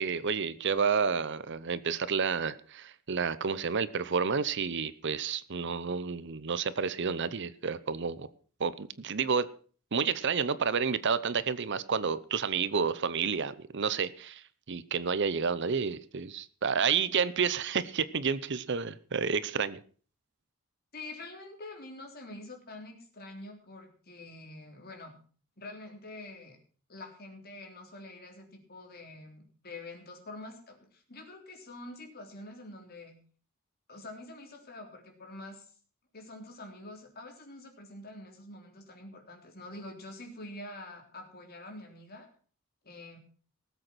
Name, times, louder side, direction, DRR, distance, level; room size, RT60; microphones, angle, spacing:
voice 1, 0.0-8.3 8.6-9.5 9.9-19.8, right 6 dB, 55° right, 16 dB, 0.7 m, -30 dB
voice 2, 20.9-25.1 25.6-26.6 26.9-33.2 33.9-35.7 36.1-42.3 42.8-43.2, left 2 dB, 45° left, 3 dB, 3.6 m, -46 dB
18.5 x 7.9 x 6.1 m, 0.43 s
head